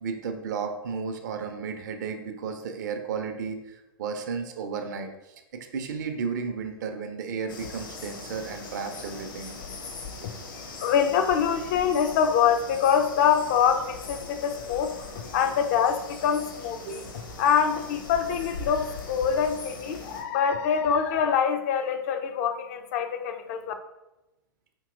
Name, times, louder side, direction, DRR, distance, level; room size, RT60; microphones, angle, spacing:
voice 1, 0.0-9.5 10.2-10.3 16.9-17.0, right 5 dB, 50° right, 6 dB, 0.5 m, -33 dB
sound 1, 7.5-20.2, left 3 dB, 60° left, 0.7 m, -41 dB
voice 2, 10.2-17.0 17.4-23.7, left 7 dB, 40° left, 7 dB, 0.3 m, -25 dB
4.5 x 2.8 x 2.5 m, 0.98 s
figure-of-eight pair, 100°, 12 cm